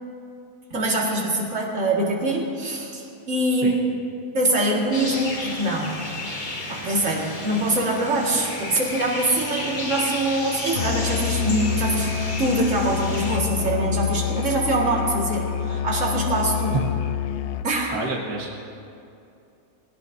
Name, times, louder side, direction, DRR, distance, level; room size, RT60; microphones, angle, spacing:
voice 1, 0.7-4.0 4.3-6.0 6.7-12.1 12.4-16.8 17.6-17.9, right 1 dB, 50° right, -2 dB, 2.2 m, -24 dB
sound 1, 4.9-13.4, left 2 dB, 30° left, 1.4 m, -33 dB
Musical instrument, 10.7-17.8, left 9 dB, 75° left, 0.6 m, -27 dB
voice 2, 17.9-18.5, right 4 dB, 80° right, -1 dB, 1.7 m, -27 dB
20.5 x 17.5 x 2.7 m, 2.6 s
omnidirectional pair, 1.7 m